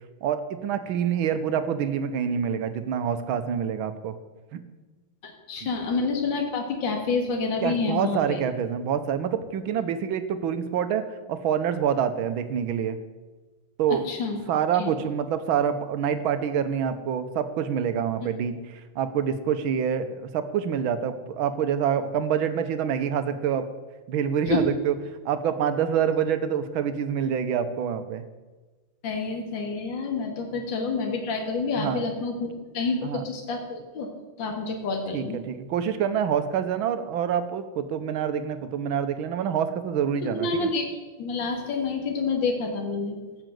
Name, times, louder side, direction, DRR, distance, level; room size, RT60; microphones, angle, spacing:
voice 1, 0.2-4.1 4.5-4.6 7.6-11.0 11.3-13.0 13.8-14.0 14.5-23.7 24.1-24.9 25.2-28.2 31.8-32.0 33.0-33.2 35.1-40.7, right 8 dB, 75° right, 10 dB, 1.7 m, -26 dB
voice 2, 5.2-8.4 14.0-14.4 14.8-14.9 24.5-24.6 29.0-34.1 34.4-35.4 40.2-40.9 41.2-43.2, left 4 dB, 60° left, 2 dB, 2.4 m, -28 dB
14.0 x 6.3 x 7.7 m, 1.2 s
omnidirectional pair, 2.3 m